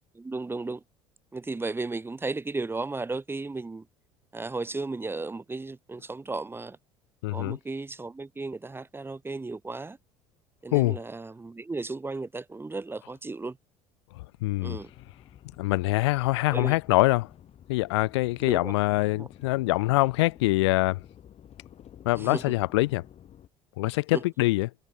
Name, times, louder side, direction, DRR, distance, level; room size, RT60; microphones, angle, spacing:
voice 1, 0.1-0.8 1.3-3.8 4.3-6.8 7.3-10.0 10.6-13.6 14.6-14.9 16.5-16.8 18.4-18.7 19.2-19.3 22.1-22.5 24.1-24.2, right 3 dB, 15° right, 1.1 m, -34 dB
voice 2, 7.2-7.6 10.7-11.0 14.2-14.8 15.6-17.3 17.7-21.0 22.1-23.0 23.8-24.7, left 20 dB, 80° left, 0.6 m, -24 dB
sound 1, 14.5-23.5, left 10 dB, 50° left, 4.2 m, -52 dB
hypercardioid pair, 70°, 14 cm